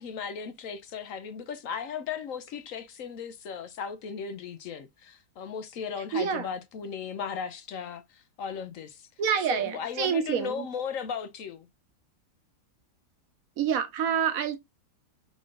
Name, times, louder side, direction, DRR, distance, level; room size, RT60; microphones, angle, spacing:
voice 1, 0.0-9.1 9.5-11.7, left 6 dB, 65° left, 0.9 m, -36 dB
voice 2, 6.1-6.5 9.2-10.7 13.6-14.6, right 7 dB, 60° right, 1.2 m, -27 dB
3.8 x 3.7 x 3.5 m
omnidirectional pair, 1.8 m